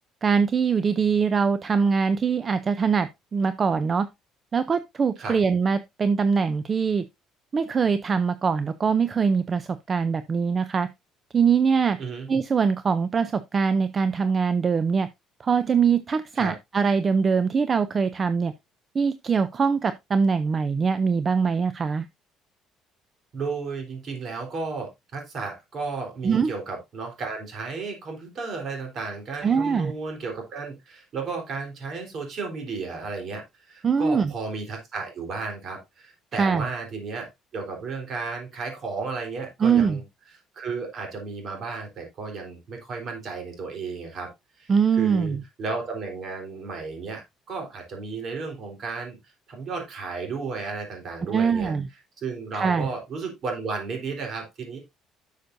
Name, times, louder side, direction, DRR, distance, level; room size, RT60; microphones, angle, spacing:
voice 1, 0.2-4.1 4.5-7.0 7.5-10.9 11.3-12.0 12.3-15.1 15.4-18.5 18.9-22.1 26.2-26.5 29.4-29.9 33.8-34.3 36.3-36.7 39.6-40.0 44.7-45.4 51.3-51.9 52.5-52.9, right 5 dB, 30° right, 0.5 m, -23 dB
voice 2, 23.3-40.0 40.3-44.3 44.6-51.7 52.2-54.8, right 4 dB, 45° right, 3.8 m, -33 dB
11.5 x 6.6 x 2.6 m
cardioid pair, 140°, 0 cm